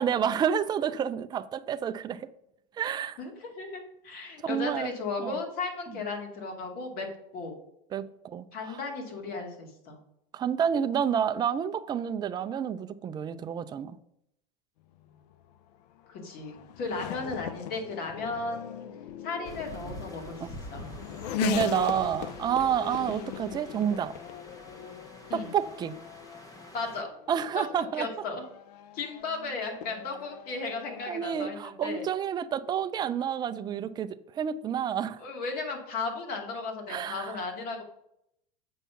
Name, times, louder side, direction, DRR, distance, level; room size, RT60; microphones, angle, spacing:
voice 1, 0.0-2.3 2.8-3.2 4.4-4.9 5.2-5.4 5.9-6.0 7.9-8.8 10.3-14.0 20.4-20.5 21.4-24.1 25.3-26.0 27.3-28.1 31.1-35.2 36.9-37.5, right 8 dB, 20° right, 0.4 m, -29 dB
voice 2, 3.2-7.1 7.3-7.5 8.5-10.0 16.1-18.9 19.2-20.4 20.7-20.8 25.3-25.5 26.7-27.1 27.5-27.6 28.0-28.4 28.9-32.0 35.2-37.8, left 3 dB, 50° left, 2.3 m, -35 dB
Race car auto racing / Accelerating revving vroom, 15.0-31.2, left 12 dB, 85° left, 0.6 m, -40 dB
sound 1, 19.4-27.0, equal, 15° left, 1.1 m, -47 dB
7.3 x 5.4 x 5.7 m
supercardioid pair, 140°, 20 cm